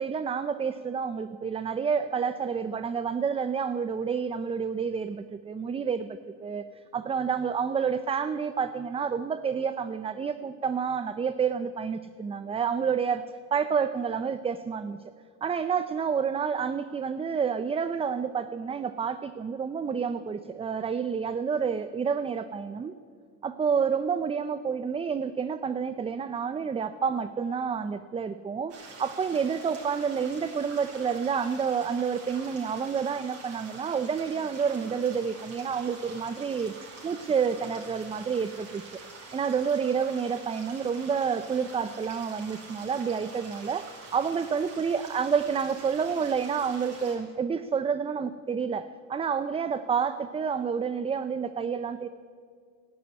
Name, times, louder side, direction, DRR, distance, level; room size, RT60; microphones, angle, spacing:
voice 1, 0.0-6.7 6.9-13.2 13.5-15.0 15.4-22.9 23.4-36.7 37.0-39.0 39.3-52.1, right 6 dB, 15° right, 12 dB, 0.5 m, -29 dB
sound 1, 28.7-47.2, right 3 dB, 45° right, 5.2 m, -46 dB
13.0 x 11.0 x 9.8 m, 2.1 s
cardioid pair, 115°, 35 cm